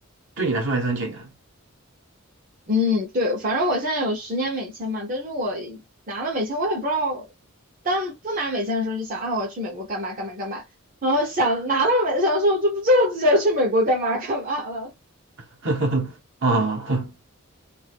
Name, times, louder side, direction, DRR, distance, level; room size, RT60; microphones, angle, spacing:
voice 1, 0.4-1.3 15.6-17.1, right 2 dB, 60° right, 1.0 m, -24 dB
voice 2, 2.7-5.8 6.1-7.3 7.8-10.6 11.0-14.9, equal, 40° right, 0.8 m, -23 dB
2.5 x 2.3 x 3.5 m
head